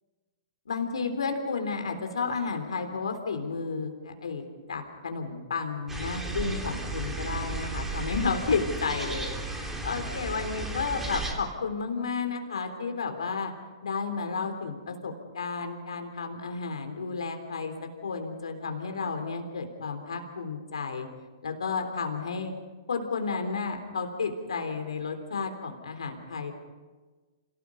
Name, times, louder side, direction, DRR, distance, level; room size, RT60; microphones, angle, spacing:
voice 1, 0.7-13.5 13.8-17.7 18.0-21.1 21.4-22.5 22.9-26.6, left 5 dB, 85° left, 5 dB, 3.6 m, -32 dB
sound 1, 5.9-11.3, right 2 dB, 10° right, 3.5 m, -34 dB
28.5 x 18.0 x 5.7 m, 1.3 s
hypercardioid pair, 130°, 3 cm